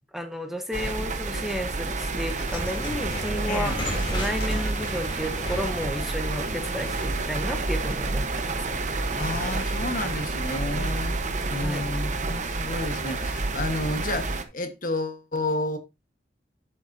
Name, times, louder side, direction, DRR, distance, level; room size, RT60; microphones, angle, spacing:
voice 1, 0.1-3.8 4.1-8.6 10.7-10.9 11.4-11.9, equal, ahead, 1.0 m, -32 dB
sound 1, 0.7-14.4, right 3 dB, 45° right, 1.0 m, -29 dB
sound 2, 2.2-7.3, left 1 dB, 30° left, 3.8 m, -36 dB
voice 2, 3.5-3.8 9.2-11.1 11.5-15.8, left 2 dB, 50° left, 1.4 m, -31 dB
Waves surf, 6.4-12.3, right 2 dB, 85° right, 3.7 m, -49 dB
11.5 x 7.8 x 2.7 m
head